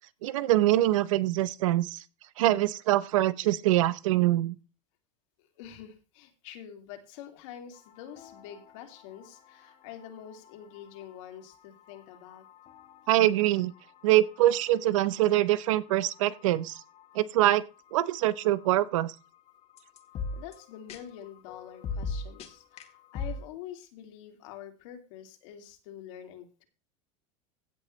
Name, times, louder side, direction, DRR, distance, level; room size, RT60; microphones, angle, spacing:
voice 1, 0.2-2.0 2.4-4.5 13.1-13.7 14.0-16.8 17.1-17.6 17.9-19.1, right 15 dB, 85° right, 0.8 m, -24 dB
voice 2, 5.4-12.4 20.3-26.6, left 10 dB, 70° left, 2.7 m, -46 dB
sound 1, 7.7-23.5, left 4 dB, 40° left, 2.1 m, -44 dB
16.0 x 7.8 x 3.2 m
supercardioid pair, 120°, 16 cm